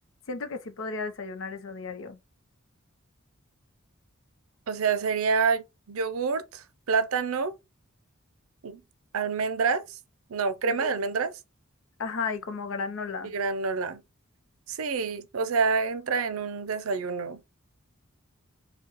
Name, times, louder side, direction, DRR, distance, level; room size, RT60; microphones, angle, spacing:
voice 1, 0.3-2.2 10.7-10.9 12.0-13.3, left 4 dB, 65° left, 0.6 m, -34 dB
voice 2, 4.7-7.5 8.6-8.8 9.1-9.8 10.3-11.3 13.3-14.0 14.7-17.4, right 5 dB, 80° right, 0.5 m, -27 dB
4.6 x 2.2 x 2.9 m
head